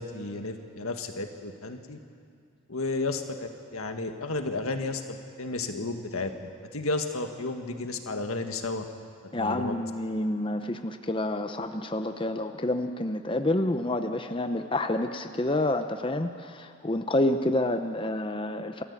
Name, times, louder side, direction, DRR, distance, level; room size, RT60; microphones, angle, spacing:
voice 1, 0.0-2.0 2.7-8.8 9.4-9.8, left 3 dB, 90° left, 5 dB, 1.8 m, -33 dB
voice 2, 9.3-18.8, left 1 dB, 25° left, 7 dB, 0.7 m, -28 dB
28.0 x 14.0 x 8.4 m, 2.4 s
head